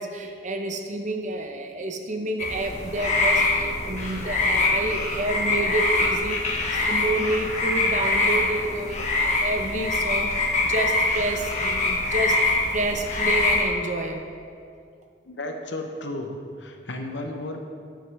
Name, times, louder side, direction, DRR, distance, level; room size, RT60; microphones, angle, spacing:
voice 1, 0.0-12.4 12.7-14.2, right 2 dB, 40° right, 4 dB, 0.8 m, -29 dB
sound 1, 2.4-13.6, left 2 dB, 40° left, 1.3 m, -24 dB
voice 2, 15.2-17.6, left 1 dB, 70° left, 4 dB, 0.9 m, -33 dB
9.2 x 8.9 x 3.5 m, 2.3 s
head